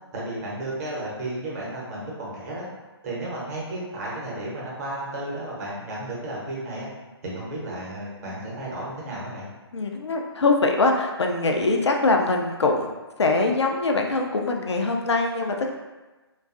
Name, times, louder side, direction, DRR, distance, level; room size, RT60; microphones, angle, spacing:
voice 1, 0.1-2.7 3.0-6.9 7.2-9.5, right 1 dB, 35° right, -5 dB, 0.8 m, -33 dB
voice 2, 9.7-12.9 13.2-15.8, left 3 dB, 85° left, 2 dB, 0.4 m, -23 dB
2.5 x 2.3 x 2.4 m, 1.2 s
figure-of-eight pair, 140°, 14 cm